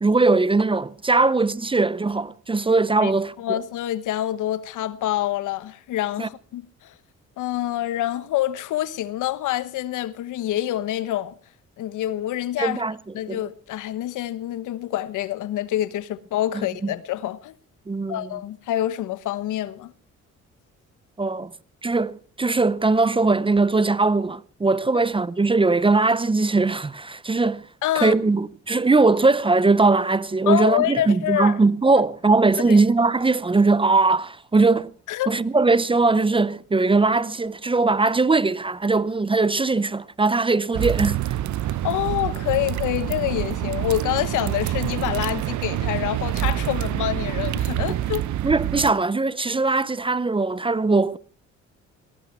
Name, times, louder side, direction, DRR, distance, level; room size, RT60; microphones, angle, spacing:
voice 1, 0.0-3.3 6.2-6.3 12.6-13.0 13.3-13.4 16.8-16.9 17.9-18.3 21.2-21.5 21.8-27.7 27.9-34.9 35.3-41.2 48.4-51.2, right 3 dB, 15° right, 0.7 m, -20 dB
voice 2, 3.4-6.9 7.4-11.3 11.8-12.8 13.1-17.5 18.1-19.9 27.8-28.2 30.5-31.6 32.7-32.8 35.1-35.3 41.7-48.2, left 13 dB, 85° left, 1.2 m, -26 dB
sound 1, 40.7-48.9, right 13 dB, 70° right, 0.9 m, -26 dB
18.0 x 17.5 x 4.4 m
cardioid pair, 90°, 30 cm